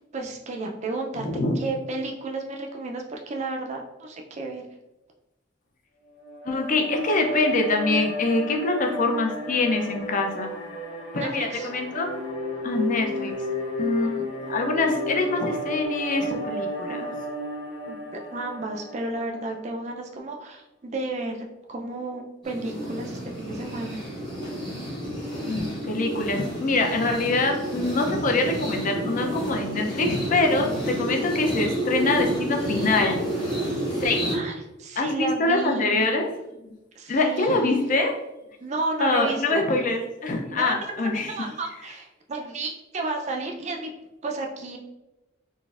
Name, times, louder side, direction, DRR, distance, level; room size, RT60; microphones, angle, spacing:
voice 1, 0.1-1.3 1.6-4.6 11.1-11.7 17.9-18.0 18.3-24.0 34.3-36.0 37.0-37.8 38.6-39.6 40.5-43.9 44.2-44.8, right 2 dB, 35° right, 2 dB, 0.4 m, -32 dB
voice 2, 1.2-1.6 6.5-10.5 11.1-12.1 12.6-13.3 13.8-17.1 25.5-33.2 34.0-34.3 35.0-36.3 37.1-38.1 39.0-41.3, left 2 dB, 45° left, 3 dB, 0.5 m, -24 dB
sound 1, 6.1-19.5, left 1 dB, 75° left, 1.2 m, -32 dB
sound 2, 22.4-34.3, equal, 25° left, 1.0 m, -30 dB
3.9 x 2.5 x 2.4 m, 0.96 s
head